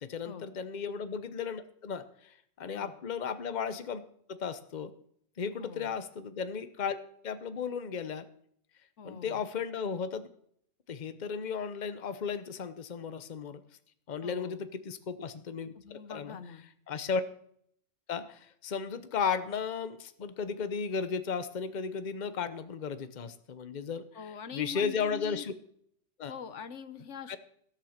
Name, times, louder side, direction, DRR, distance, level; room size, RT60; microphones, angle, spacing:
voice 1, 0.0-4.0 4.3-4.9 5.4-7.0 7.2-8.3 9.0-10.3 10.9-13.6 14.1-15.7 16.1-16.4 16.9-17.2 18.1-24.0 24.5-25.5 26.2-26.3 27.3-27.4, left 6 dB, 40° left, 11 dB, 0.9 m, -35 dB
voice 2, 5.6-5.9 9.0-9.4 14.2-14.6 15.7-16.6 24.1-25.4 26.3-27.4, left 7 dB, 75° left, 11 dB, 1.3 m, -44 dB
17.0 x 7.1 x 6.5 m, 0.66 s
omnidirectional pair, 1.3 m